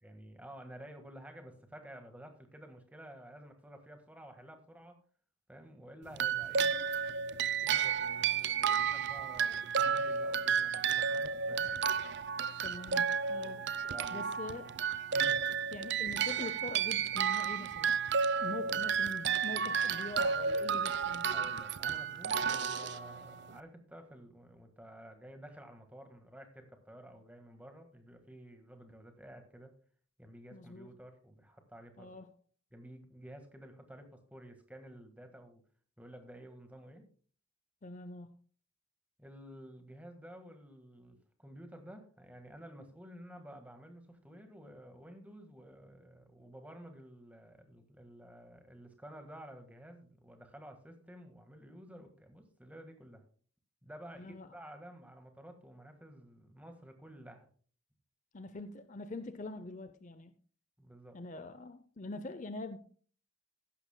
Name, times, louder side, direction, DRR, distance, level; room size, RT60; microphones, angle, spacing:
voice 1, 0.0-4.9 5.5-6.8 7.6-11.7 13.9-14.3 15.1-15.4 21.3-29.7 30.2-32.2 32.7-35.6 36.0-37.1 39.2-53.2 53.8-57.5 60.8-61.2, right 1 dB, 5° right, 1.6 m, -52 dB
sound 1, 6.1-23.6, right 6 dB, 55° right, 0.5 m, -32 dB
voice 2, 12.6-13.6 14.1-14.8 15.7-17.9 18.4-21.5 30.5-30.9 32.0-32.3 37.8-38.4 54.2-54.5 58.3-60.3 61.1-62.8, left 2 dB, 35° left, 0.5 m, -44 dB
15.5 x 11.5 x 2.2 m
head